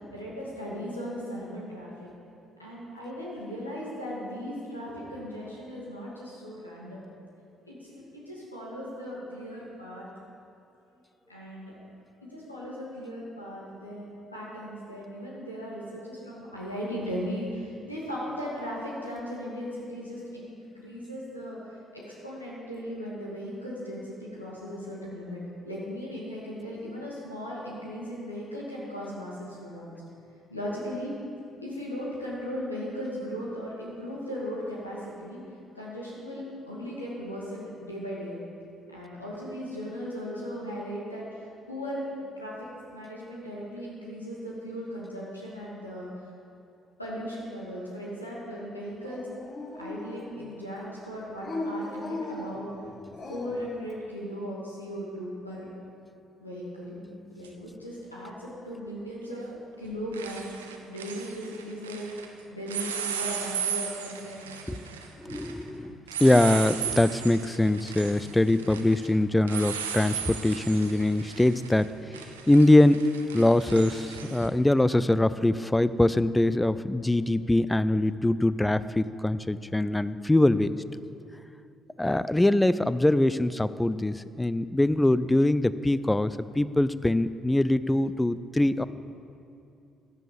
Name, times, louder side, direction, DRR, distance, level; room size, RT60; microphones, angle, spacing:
voice 1, 0.0-2.1 2.6-7.1 7.6-10.1 11.3-11.8 12.2-21.6 21.9-30.0 30.5-31.1 31.6-35.4 35.7-38.4 38.9-42.0 42.4-46.1 47.0-49.3 49.8-52.7 53.3-55.7 56.4-57.0 57.3-59.4 59.8-65.0 88.7-88.9, equal, 90° left, -6 dB, 2.3 m, -37 dB
Dog, 49.0-50.5 51.3-53.7, left 2 dB, 40° left, 1.5 m, -37 dB
sound 1, 57.4-57.5 59.3-59.6 59.8-62.3 62.7-74.5, right 7 dB, 80° right, 0.7 m, -36 dB
voice 2, 65.2-71.9 72.5-73.0 73.3-80.8 82.0-88.8, left 1 dB, 10° left, 15 dB, 0.5 m, -23 dB
15.0 x 11.0 x 5.2 m, 2.7 s
figure-of-eight pair, 45°, 0 cm